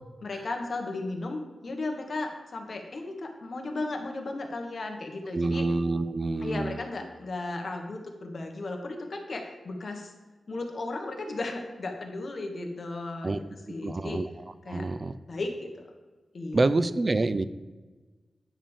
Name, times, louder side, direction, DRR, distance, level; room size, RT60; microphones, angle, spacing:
voice 1, 0.2-5.7 6.4-10.1 10.5-14.2 14.6-14.9 15.3-15.7 16.3-16.6, left 2 dB, 55° left, 3 dB, 1.3 m, -35 dB
voice 2, 5.3-6.8 13.2-13.4 13.8-14.3 14.7-15.1 16.5-17.4, right 2 dB, 35° right, 13 dB, 0.4 m, -27 dB
10.0 x 3.6 x 7.0 m, 1.3 s
wide cardioid pair, 105°, 0 cm